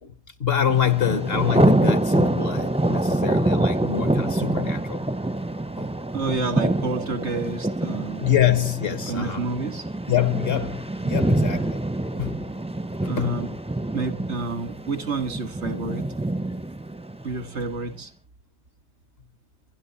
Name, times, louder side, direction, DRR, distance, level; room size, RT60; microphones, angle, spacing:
voice 1, 0.4-5.0 5.8-5.9 8.2-9.5 10.1-11.8 12.2-12.4 13.0-13.5, left 10 dB, 65° left, 1.2 m, -25 dB
Thunder, 0.7-17.7, right 1 dB, 10° right, 0.4 m, -25 dB
voice 2, 6.1-8.3 9.1-9.8 13.0-13.5 13.9-16.0 17.2-18.1, right 3 dB, 90° right, 2.0 m, -29 dB
23.5 x 11.5 x 4.2 m
omnidirectional pair, 1.1 m